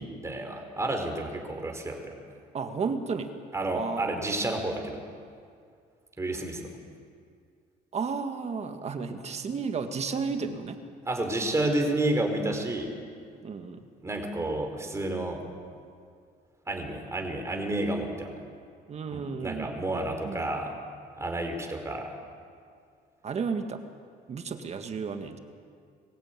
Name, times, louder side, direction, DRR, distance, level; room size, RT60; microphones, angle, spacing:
voice 1, 0.0-2.1 3.5-5.0 6.2-6.6 11.1-12.9 14.0-15.4 16.7-18.3 19.1-20.7 21.2-22.1, right 2 dB, 15° right, 3 dB, 4.0 m, -30 dB
voice 2, 2.5-3.3 3.7-4.2 7.9-10.8 13.4-13.8 18.9-20.6 23.2-23.8 24.3-25.4, right 5 dB, 40° right, 7 dB, 1.8 m, -33 dB
22.0 x 15.0 x 9.1 m, 2.2 s
cardioid pair, 110°, 17 cm